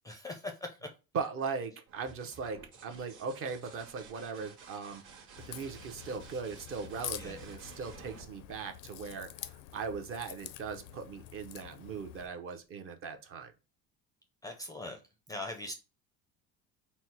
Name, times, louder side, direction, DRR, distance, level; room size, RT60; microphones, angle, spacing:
voice 1, 0.0-0.9 7.2-7.4 14.4-15.0 15.3-15.7, left 2 dB, 10° left, 0.4 m, -41 dB
voice 2, 1.1-13.5, right 5 dB, 40° right, 0.7 m, -39 dB
sound 1, 1.9-9.4 11.2-11.8, right 5 dB, 60° right, 1.5 m, -54 dB
Crack, 5.4-12.3, left 13 dB, 75° left, 0.5 m, -47 dB
4.2 x 2.0 x 4.4 m
cardioid pair, 150°, 33 cm